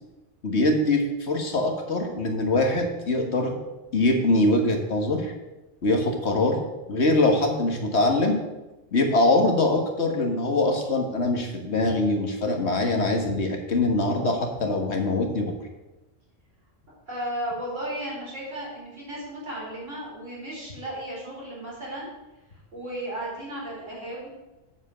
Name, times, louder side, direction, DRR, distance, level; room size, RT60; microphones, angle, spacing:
voice 1, 0.4-3.6 3.9-5.3 5.8-6.6 6.9-8.4 8.9-15.5, left 2 dB, 60° left, 3 dB, 1.8 m, -23 dB
voice 2, 17.1-22.1 22.7-24.3, right 1 dB, 80° right, -5 dB, 4.4 m, -34 dB
8.2 x 7.7 x 6.6 m, 1.1 s
omnidirectional pair, 1.3 m